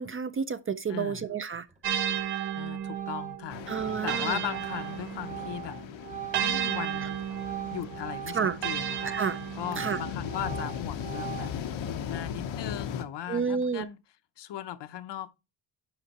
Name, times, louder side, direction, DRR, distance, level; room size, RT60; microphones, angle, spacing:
voice 1, 0.0-1.7 3.7-4.4 8.3-8.6 9.1-9.4 9.8-10.0 13.3-13.9, right 6 dB, 30° right, 0.4 m, -30 dB
voice 2, 0.9-1.3 2.6-5.8 6.4-7.2 7.7-9.2 9.5-11.5 12.1-14.0 14.4-15.3, left 11 dB, 65° left, 0.8 m, -38 dB
Organ, 1.7-1.9 2.3-8.6 8.9-11.8, right 12 dB, 15° right, 0.8 m, -41 dB
sound 1, 1.8-5.6 6.3-10.0, right 9 dB, 60° right, 0.8 m, -33 dB
sound 2, 3.5-13.0, left 8 dB, 90° left, 1.0 m, -38 dB
10.5 x 4.5 x 2.9 m
wide cardioid pair, 145°, 45 cm